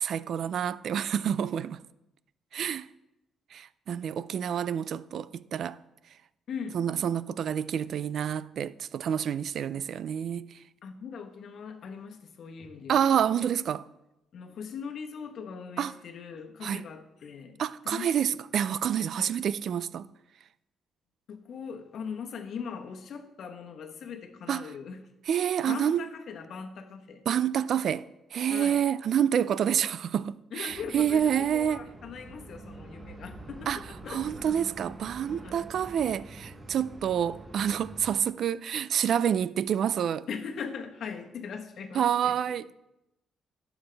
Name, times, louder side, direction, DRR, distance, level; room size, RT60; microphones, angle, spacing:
voice 1, 0.0-1.8 2.5-2.9 3.5-5.8 6.7-10.5 12.9-13.9 15.8-15.9 16.6-16.8 17.6-20.1 24.5-24.6 25.3-26.0 27.3-31.8 33.7-33.8 34.1-40.3 41.9-42.7, right 9 dB, 60° right, 0.3 m, -28 dB
voice 2, 6.5-6.8 9.7-9.8 10.8-13.2 14.3-18.1 19.2-19.3 21.3-25.0 25.6-27.2 28.5-28.8 30.5-34.3 35.4-35.6 40.3-42.4, left 6 dB, 65° left, 1.0 m, -40 dB
sound 1, 30.7-38.2, right 2 dB, 25° right, 1.0 m, -46 dB
11.5 x 7.1 x 3.4 m
cardioid pair, 100°, 0 cm